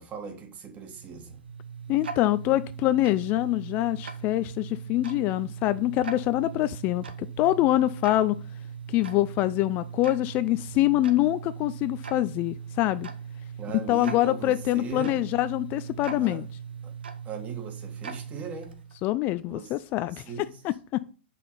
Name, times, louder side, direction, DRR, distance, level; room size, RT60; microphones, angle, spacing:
voice 1, 0.0-1.4 13.6-15.2 16.2-16.4 16.8-16.9 17.2-18.8 19.4-19.7 20.1-20.6, right 5 dB, 25° right, 1.7 m, -38 dB
Tick-tock, 0.8-19.1, right 7 dB, 70° right, 1.3 m, -39 dB
voice 2, 1.9-7.0 7.4-8.4 8.9-13.1 13.9-16.4 19.0-20.3 20.6-21.0, left 15 dB, 30° left, 0.3 m, -25 dB
8.1 x 5.7 x 4.0 m
figure-of-eight pair, 110°, 6 cm